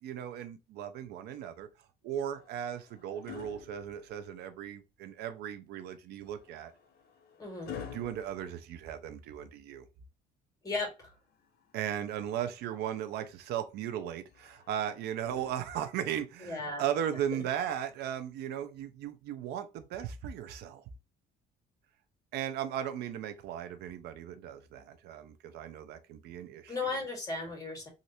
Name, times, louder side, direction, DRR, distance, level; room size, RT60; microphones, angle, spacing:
voice 1, 0.0-1.7 2.0-6.7 7.9-9.9 11.7-20.8 22.3-27.0, right 10 dB, 80° right, 0.5 m, -37 dB
sound 1, 2.1-4.6 6.2-9.4 11.1-12.3 14.3-16.1 17.3-17.5, left 7 dB, 70° left, 0.7 m, -50 dB
voice 2, 7.4-7.7 10.6-11.1 16.5-16.8 26.7-27.9, left 3 dB, 20° left, 1.8 m, -35 dB
3.2 x 2.6 x 2.8 m
cardioid pair, 110°, 17 cm